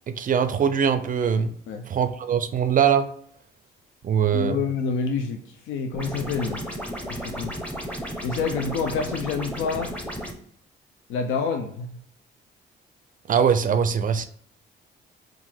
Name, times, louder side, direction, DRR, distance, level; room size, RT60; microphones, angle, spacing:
voice 1, 0.1-1.5 1.9-3.1 4.0-4.6 13.3-14.2, right 7 dB, 45° right, 10 dB, 0.4 m, -22 dB
voice 2, 4.3-5.4 5.7-6.6 7.1-7.6 8.2-9.9 11.1-12.0, left 5 dB, 90° left, 5 dB, 0.5 m, -27 dB
sound 1, 5.9-10.3, equal, 5° left, 0.7 m, -34 dB
3.7 x 2.5 x 4.3 m, 0.64 s
cardioid pair, 90°, 20 cm